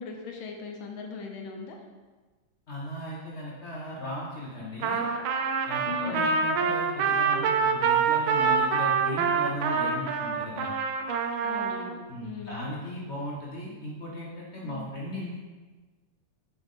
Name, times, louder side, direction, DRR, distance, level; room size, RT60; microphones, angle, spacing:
voice 1, 0.0-1.8 5.8-6.3 11.4-12.6 14.6-14.9, left 5 dB, 85° left, 2 dB, 1.6 m, -39 dB
voice 2, 2.7-5.1 5.7-10.7 12.1-15.4, equal, 55° left, -4 dB, 0.7 m, -37 dB
Trumpet, 4.8-11.9, right 5 dB, 85° right, 1.4 m, -26 dB
5.5 x 4.8 x 3.6 m, 1.3 s
omnidirectional pair, 2.2 m